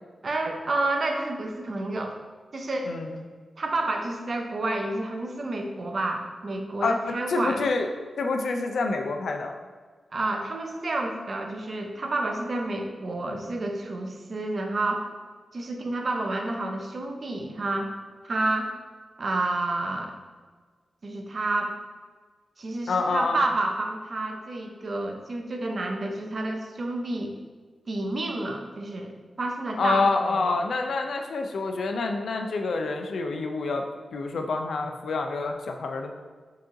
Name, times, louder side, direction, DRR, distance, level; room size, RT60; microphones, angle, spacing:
voice 1, 0.2-2.2 2.5-2.9 3.6-7.6 10.1-15.1 15.5-17.9 18.2-18.7 19.2-20.1 21.0-21.7 22.6-27.3 27.9-30.5, right 2 dB, 45° right, 3 dB, 0.5 m, -29 dB
voice 2, 6.8-7.9 8.2-9.5 22.9-23.4 29.8-33.8 34.1-36.1, left 3 dB, 80° left, 4 dB, 0.4 m, -27 dB
4.6 x 3.0 x 3.7 m, 1.5 s
wide cardioid pair, 135°, 0 cm